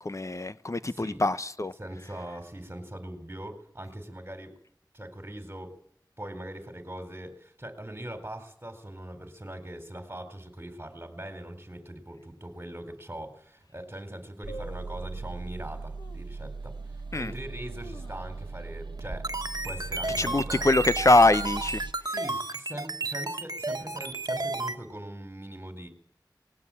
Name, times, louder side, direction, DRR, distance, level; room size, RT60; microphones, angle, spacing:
voice 1, 0.0-1.7 17.1-17.3 20.2-21.8, left 2 dB, 40° left, 0.9 m, -23 dB
voice 2, 0.9-1.2 1.8-4.6 4.9-5.8 6.2-19.3 19.6-20.6 22.0-25.9, right 1 dB, 30° right, 4.2 m, -41 dB
sound 1, 12.4-12.5 13.2-13.3 13.5-13.9 14.5-15.2 16.0-16.4 16.9-17.0 17.5-18.6 18.9-19.0 19.4-19.7 20.1-20.5 21.1-21.9 22.2-22.3, equal, 55° left, 1.9 m, -47 dB
sound 2, 14.4-21.9, right 3 dB, 75° right, 1.0 m, -39 dB
sound 3, 19.0-24.8, right 3 dB, 55° right, 1.6 m, -32 dB
20.0 x 17.0 x 8.7 m
wide cardioid pair, 50°, 8 cm